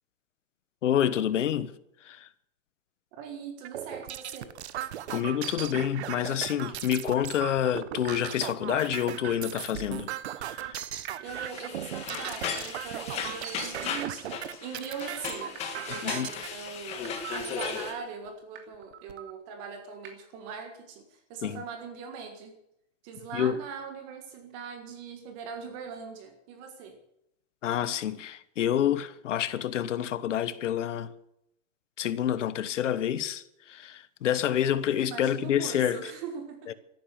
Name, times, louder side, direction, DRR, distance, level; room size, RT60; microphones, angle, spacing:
voice 1, 0.8-1.7 2.0-2.3 5.1-10.1 10.4-10.8 16.0-16.3 21.4-21.6 23.3-23.6 27.6-31.1 32.0-36.1 36.7-36.8, left 10 dB, 70° left, 1.3 m, -28 dB
voice 2, 3.2-4.5 10.6-10.7 11.2-14.3 14.6-22.6 23.0-27.0 35.0-36.7, right 6 dB, 25° right, 1.7 m, -41 dB
sound 1, 3.6-16.5 17.2-17.7 18.3-18.4 18.7-19.3, right 11 dB, 60° right, 1.1 m, -37 dB
sound 2, 8.0-8.1 9.5-9.6 11.0-11.1 12.5-12.6 14.0-14.1 15.5-15.6 17.0-17.1 18.5-18.6 20.0-20.1, right 8 dB, 40° right, 3.0 m, -46 dB
sound 3, 11.2-17.9, left 6 dB, 15° left, 1.8 m, -36 dB
14.0 x 11.0 x 8.6 m
supercardioid pair, 175°, 38 cm